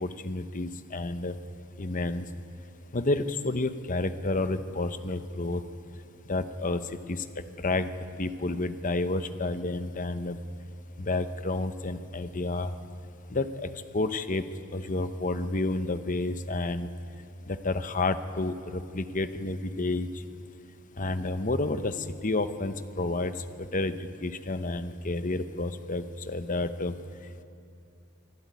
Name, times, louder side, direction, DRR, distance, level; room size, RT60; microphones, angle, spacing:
voice 1, 0.0-1.3 1.8-2.2 2.9-5.6 6.3-6.8 7.1-7.2 7.6-7.9 8.2-10.4 11.0-12.7 13.3-13.5 13.9-14.4 14.7-16.9 17.5-20.1 21.0-21.9 22.2-23.3 23.7-24.0 24.2-26.9, left 2 dB, 35° left, 11 dB, 0.8 m, -30 dB
24.0 x 12.5 x 9.4 m, 2.6 s
head